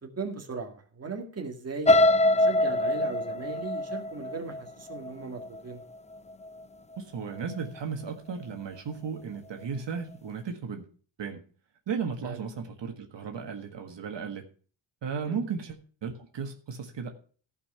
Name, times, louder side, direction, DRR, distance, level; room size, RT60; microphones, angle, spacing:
voice 1, 0.0-1.9 2.3-5.8 12.2-12.4 15.2-15.4, right 4 dB, 30° right, 3 dB, 2.0 m, -37 dB
sound 1, 1.9-5.8 6.3-6.6 6.9-7.0, left 1 dB, 15° left, 0.5 m, -24 dB
voice 2, 7.0-10.8 11.2-11.4 11.9-14.4 15.0-17.1, right 6 dB, 65° right, 3 dB, 1.7 m, -35 dB
15.5 x 5.6 x 5.6 m, 0.40 s
wide cardioid pair, 140°, 46 cm